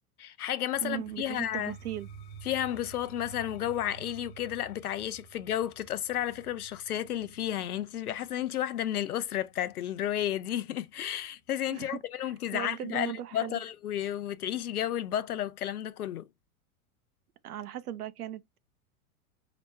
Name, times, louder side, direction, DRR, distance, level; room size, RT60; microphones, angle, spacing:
voice 1, 0.2-1.7 2.4-16.3, left 11 dB, 85° left, 0.6 m, -32 dB
sound 1, 0.7-10.5, right 4 dB, 45° left, 1.1 m, -51 dB
voice 2, 0.8-2.1 11.7-13.6 17.4-18.6, right 11 dB, 85° right, 0.7 m, -38 dB
4.9 x 2.2 x 4.4 m
hypercardioid pair, 95°, 44 cm